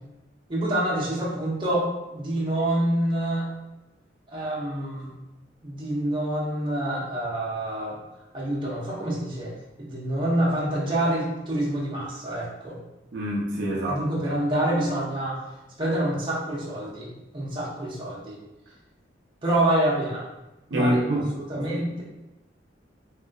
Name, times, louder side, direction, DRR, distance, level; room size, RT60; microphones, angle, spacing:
voice 1, 0.5-3.5 4.3-5.1 5.6-8.0 8.3-9.5 9.8-12.8 13.9-15.4 15.8-18.4 19.4-20.3 20.7-21.0 21.5-22.0, right 1 dB, 30° right, -6 dB, 0.8 m, -27 dB
voice 2, 13.1-14.0 20.7-21.3 21.6-21.7, right 1 dB, 70° right, -3 dB, 0.5 m, -25 dB
3.0 x 2.8 x 2.4 m, 1.0 s
head